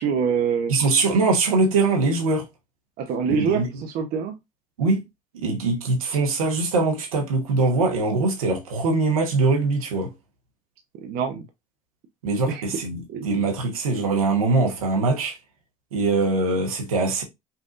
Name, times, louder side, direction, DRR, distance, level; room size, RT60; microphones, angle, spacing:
voice 1, 0.0-0.7 3.0-4.3 11.0-11.4 12.5-12.6 13.1-13.3, right 6 dB, 60° right, 0.8 m, -25 dB
voice 2, 0.7-2.5 3.3-3.7 4.8-5.0 5.3-10.1 12.2-15.3 15.9-17.2, right 3 dB, 85° right, 1.1 m, -22 dB
5.4 x 2.6 x 2.5 m
hypercardioid pair, 65°, 18 cm